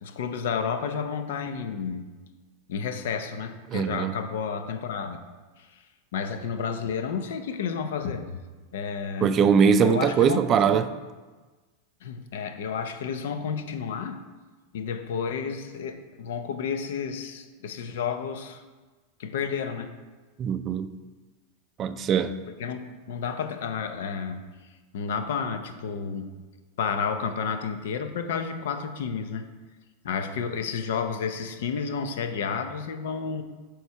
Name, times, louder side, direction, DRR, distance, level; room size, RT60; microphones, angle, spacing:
voice 1, 0.0-2.1 2.7-5.2 5.6-5.7 6.1-8.4 8.7-9.4 9.8-10.4 10.7-10.8 12.0-14.2 14.7-18.6 19.2-20.0 22.6-24.5 24.9-26.4 26.8-29.5 30.0-33.4, left 6 dB, 75° left, 0.6 m, -31 dB
voice 2, 3.7-4.1 9.2-10.9 20.4-20.9 21.8-22.4, right 7 dB, 30° right, 0.3 m, -21 dB
7.8 x 3.2 x 5.7 m
supercardioid pair, 135°, 0 cm